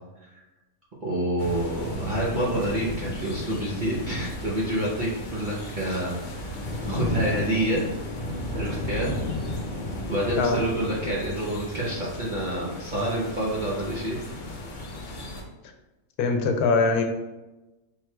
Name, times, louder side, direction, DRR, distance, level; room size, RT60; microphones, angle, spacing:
voice 1, 1.0-6.3 6.9-7.8 8.5-9.1 9.5-9.6 10.1-14.2, right 1 dB, 50° right, -6 dB, 0.6 m, -28 dB
sound 1, 1.4-15.4, left 1 dB, 60° left, 0.5 m, -34 dB
voice 2, 16.2-17.0, left 4 dB, 85° left, 5 dB, 1.1 m, -22 dB
4.5 x 3.7 x 2.2 m, 1.0 s
omnidirectional pair, 1.6 m